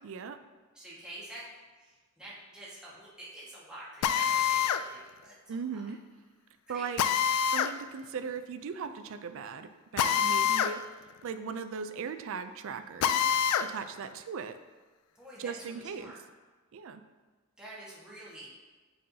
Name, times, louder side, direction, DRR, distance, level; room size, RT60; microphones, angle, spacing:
voice 1, 0.0-0.4 5.5-6.0 6.7-7.0 7.5-10.8 11.2-13.3 13.6-14.6 15.4-16.1 16.7-17.0, right 6 dB, 60° right, 10 dB, 0.4 m, -38 dB
voice 2, 0.7-1.5 1.8-5.8 6.7-6.8 15.1-16.2 17.6-18.5, right 1 dB, 5° right, -8 dB, 1.5 m, -47 dB
Drill, 4.0-4.8 7.0-7.7 10.0-10.7 11.1-11.2 13.0-13.7, left 8 dB, 90° left, 0.3 m, -26 dB
7.6 x 5.5 x 2.7 m, 1.3 s
head